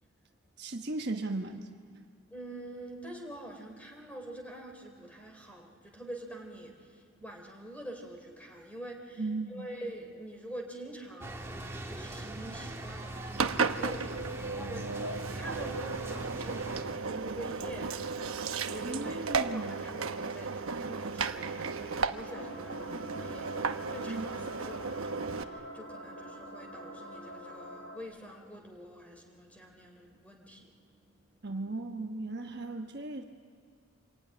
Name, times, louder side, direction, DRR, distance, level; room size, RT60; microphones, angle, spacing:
voice 1, 0.6-1.8 9.2-9.7 18.8-19.8 24.1-24.3 31.4-33.2, right 2 dB, 50° right, 3 dB, 1.2 m, -36 dB
voice 2, 2.3-9.2 9.5-31.4, right 1 dB, 5° left, 2 dB, 3.5 m, -46 dB
sound 1, 11.2-16.8, right 1 dB, 15° right, 1.9 m, -41 dB
Engine, 13.4-25.4, right 4 dB, 80° right, 1.0 m, -34 dB
sound 2, 20.8-28.0, equal, 55° left, 6.0 m, -45 dB
26.5 x 21.5 x 9.8 m, 2.2 s
head